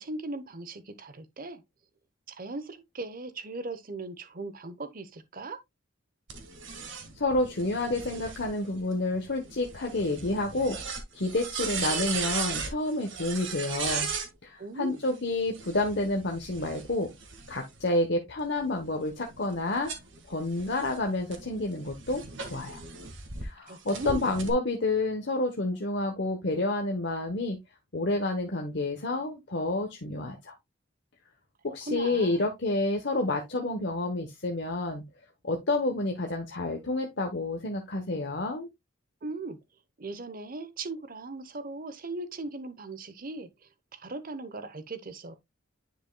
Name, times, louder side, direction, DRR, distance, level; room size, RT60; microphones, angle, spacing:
voice 1, 0.0-1.6 2.3-5.6 14.6-15.0 23.7-24.2 31.9-32.5 39.2-39.6 40.0-43.5 43.9-45.3, right 3 dB, 40° right, 0.9 m, -38 dB
sound 1, 6.3-14.3 15.4-17.8 18.4-23.4 23.9-24.5, right 5 dB, 60° right, 1.5 m, -37 dB
voice 2, 7.2-10.8 11.1-14.1 14.4-17.1 17.5-19.9 20.3-22.8 23.4-27.6 27.9-30.5 31.7-35.0 35.4-38.7, left 2 dB, 55° left, 1.0 m, -29 dB
10.0 x 5.2 x 2.2 m
head